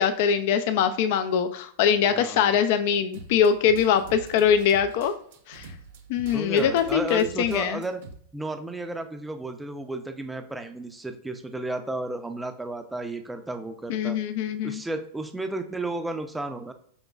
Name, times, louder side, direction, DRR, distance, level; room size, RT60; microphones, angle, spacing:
voice 1, 0.0-5.1 5.5-5.7 6.1-7.8 13.9-14.8, left 7 dB, 60° left, 10 dB, 0.3 m, -23 dB
voice 2, 2.1-2.6 6.3-8.0 8.3-14.2 14.6-16.7, right 2 dB, 5° right, 6 dB, 0.4 m, -33 dB
sound 1, 3.1-8.1, right 4 dB, 70° right, 0.8 m, -44 dB
5.2 x 2.9 x 2.3 m, 0.62 s
supercardioid pair, 135°, 0 cm